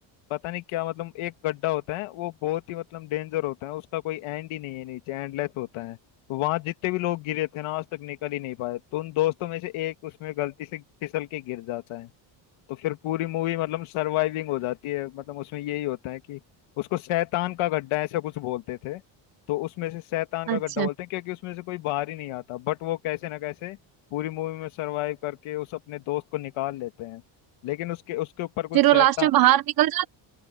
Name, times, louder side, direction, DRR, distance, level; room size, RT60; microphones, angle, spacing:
voice 1, 0.3-6.0 6.3-12.1 12.7-16.4 16.8-19.0 19.5-23.8 24.1-27.2 27.6-29.3, left 16 dB, 75° left, 2.1 m, -30 dB
voice 2, 20.5-20.9 28.7-30.1, right 14 dB, 45° right, 1.0 m, -20 dB
open air
cardioid pair, 175°, 49 cm